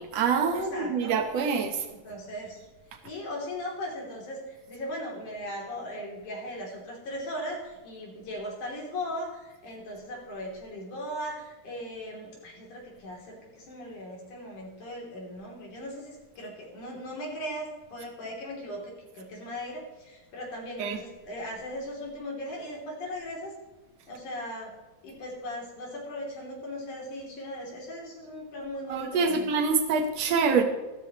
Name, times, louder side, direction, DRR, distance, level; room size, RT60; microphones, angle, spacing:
voice 1, 0.0-1.8 20.8-21.0 28.9-30.6, right 5 dB, 65° right, 4 dB, 1.7 m, -25 dB
voice 2, 0.5-1.2 1.9-2.6 3.0-23.5 24.1-24.7 25.0-29.5, equal, 55° left, -2 dB, 4.4 m, -38 dB
14.5 x 13.5 x 3.1 m, 1.1 s
omnidirectional pair, 4.4 m